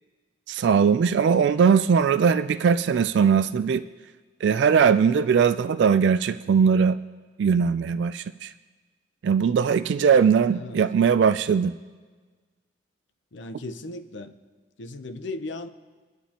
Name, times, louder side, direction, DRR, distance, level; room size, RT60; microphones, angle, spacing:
voice 1, 0.5-3.8 4.4-7.0 7.4-8.5 9.2-11.8, right 6 dB, 70° right, 0.3 m, -20 dB
voice 2, 10.1-10.8 13.3-14.3 14.8-15.7, left 2 dB, 75° left, 0.7 m, -37 dB
24.0 x 11.0 x 2.9 m
head